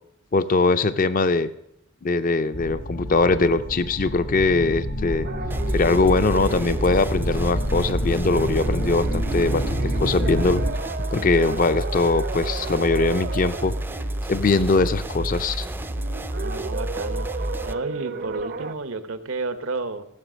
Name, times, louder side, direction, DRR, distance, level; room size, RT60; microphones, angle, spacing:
voice 1, 0.3-1.5 2.0-5.3 5.7-9.6 10.0-10.6 11.1-13.8 14.3-15.7, left 3 dB, 45° left, 13 dB, 0.5 m, -21 dB
sound 1, 2.5-10.7, equal, 75° left, 2.6 m, -29 dB
sound 2, 5.2-18.7, right 4 dB, 50° right, 0.6 m, -35 dB
sound 3, 5.5-17.7, right 1 dB, 10° right, 0.4 m, -30 dB
voice 2, 16.4-20.1, right 3 dB, 85° right, 10 dB, 1.0 m, -32 dB
15.5 x 7.3 x 6.3 m, 0.78 s
head